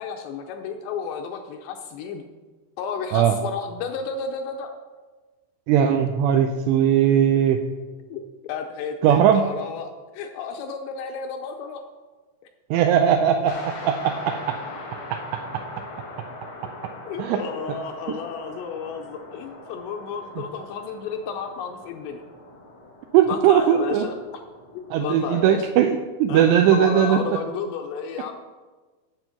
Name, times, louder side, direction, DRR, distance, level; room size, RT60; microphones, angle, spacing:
voice 1, 0.0-2.2 2.8-4.7 8.1-11.8 17.1-22.2 23.3-24.2 24.7-25.7 26.3-26.4 26.7-28.3, left 6 dB, 80° left, 4 dB, 2.6 m, -32 dB
voice 2, 5.7-7.6 9.0-9.4 12.7-14.6 15.1-15.6 16.8-16.9 17.2-17.4 23.1-24.0 24.9-27.2, right 9 dB, 85° right, 5 dB, 2.6 m, -19 dB
sound 1, 13.5-25.5, left 2 dB, 65° left, 1.3 m, -41 dB
9.8 x 7.4 x 5.8 m, 1.3 s
omnidirectional pair, 5.4 m